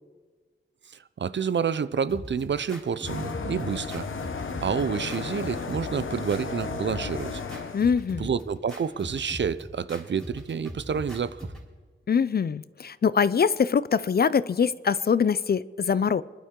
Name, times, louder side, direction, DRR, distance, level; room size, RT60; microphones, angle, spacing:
voice 1, 1.2-4.1 4.6-7.4 8.2-11.5, right 6 dB, 60° right, 15 dB, 0.5 m, -29 dB
sound 1, 2.1-11.7, equal, ahead, 3.7 m, -41 dB
sound 2, 3.0-7.8, left 5 dB, 70° left, 1.0 m, -34 dB
voice 2, 7.7-8.3 12.1-16.2, left 6 dB, 50° left, 17 dB, 0.4 m, -23 dB
25.0 x 11.5 x 3.8 m, 1.4 s
wide cardioid pair, 95°, 21 cm